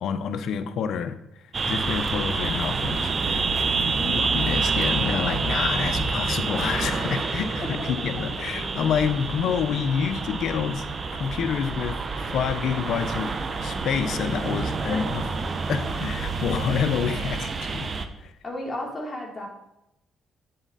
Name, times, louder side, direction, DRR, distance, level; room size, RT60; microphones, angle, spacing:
voice 1, 0.0-1.2 1.7-3.5 4.2-10.8 11.1-13.3 13.6-15.2 15.7-17.9 18.2-18.3, left 7 dB, 75° left, 10 dB, 0.8 m, -28 dB
sound 1, 1.5-18.1, right 4 dB, 40° right, 0.9 m, -28 dB
voice 2, 3.8-4.2 8.2-8.3 14.9-15.2 18.4-19.5, left 1 dB, 25° left, -2 dB, 3.3 m, -33 dB
9.2 x 7.9 x 4.1 m, 0.83 s
cardioid pair, 90°, 0 cm